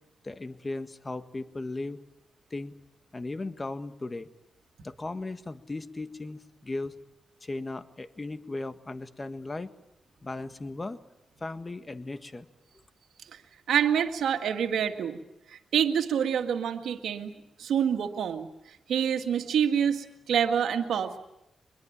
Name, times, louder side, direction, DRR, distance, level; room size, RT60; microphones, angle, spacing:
voice 1, 0.2-2.0 2.5-2.7 3.1-4.3 4.8-6.9 7.4-9.7 10.2-11.0 11.4-12.5, left 2 dB, 30° left, 10 dB, 1.6 m, -36 dB
voice 2, 13.7-15.2 15.5-17.3 17.6-21.2, right 8 dB, 85° right, 6 dB, 2.0 m, -27 dB
24.0 x 22.0 x 8.8 m, 0.87 s
cardioid pair, 70°, 0 cm